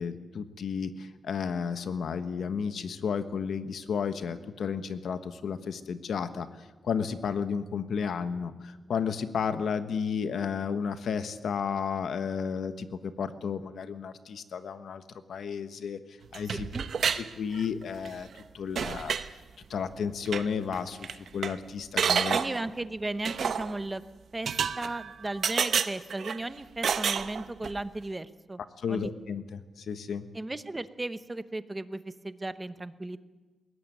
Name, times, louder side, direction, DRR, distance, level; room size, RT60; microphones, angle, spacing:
voice 1, 0.0-15.0 15.3-16.0 16.3-16.7 17.1-18.3 18.5-19.4 19.7-22.4 28.8-30.3, left 6 dB, 75° left, 10 dB, 1.3 m, -32 dB
sound 1, 16.3-17.2 17.5-18.1 18.4-18.5 18.7-19.3 20.2-20.4 20.7-20.8 21.0-21.5 22.0-22.6 23.2-23.7 24.4-25.1 25.4-26.4 26.8-27.8, right 7 dB, 65° right, 0.9 m, -29 dB
voice 2, 22.3-24.0 24.3-24.5 24.8-28.6 28.9-29.1 30.3-33.2, right 2 dB, 15° right, 12 dB, 0.9 m, -35 dB
21.0 x 17.5 x 9.1 m, 1.2 s
wide cardioid pair, 135°, 0 cm